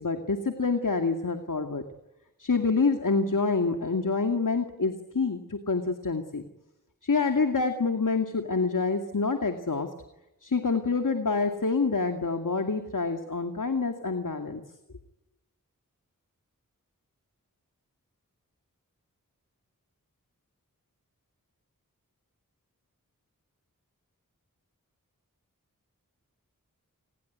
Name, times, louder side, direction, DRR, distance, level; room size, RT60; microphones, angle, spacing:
voice 1, 0.0-1.8 2.4-6.4 7.0-9.9 10.4-14.6, left 4 dB, 65° left, 6 dB, 2.3 m, -27 dB
29.5 x 21.0 x 9.5 m, 0.92 s
wide cardioid pair, 50°, 34 cm